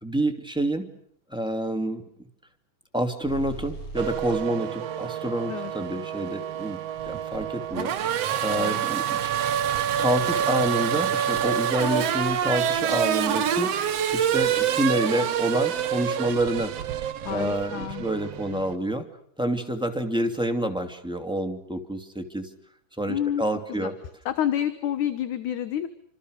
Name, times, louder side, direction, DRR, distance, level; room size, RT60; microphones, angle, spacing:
voice 1, 0.0-0.9 1.3-2.0 2.9-6.8 7.1-9.3 10.0-13.7 14.1-16.7 17.3-19.1 19.4-22.5 23.0-23.9, right 1 dB, ahead, 3 dB, 2.1 m, -28 dB
sound 1, 3.2-4.4, right 2 dB, 50° left, 7.7 m, -38 dB
Race car auto racing / Accelerating revving vroom, 4.0-18.8, right 9 dB, 60° right, 2.1 m, -27 dB
voice 2, 8.5-8.9 17.2-18.1 18.5-18.7 23.1-23.4 23.7-23.9 24.3-25.9, left 10 dB, 70° left, 11 dB, 2.5 m, -29 dB
29.0 x 26.0 x 6.7 m, 0.67 s
omnidirectional pair, 3.8 m